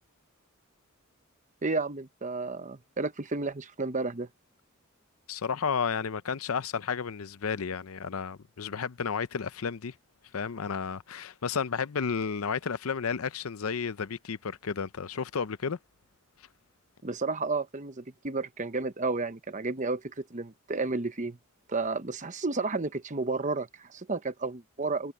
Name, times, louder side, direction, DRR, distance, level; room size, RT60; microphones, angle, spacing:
voice 1, 1.6-4.3 17.0-21.4 21.7-25.1, right 3 dB, 35° right, 1.0 m, -32 dB
voice 2, 5.3-9.9 10.3-15.8, left 6 dB, 75° left, 0.6 m, -32 dB
head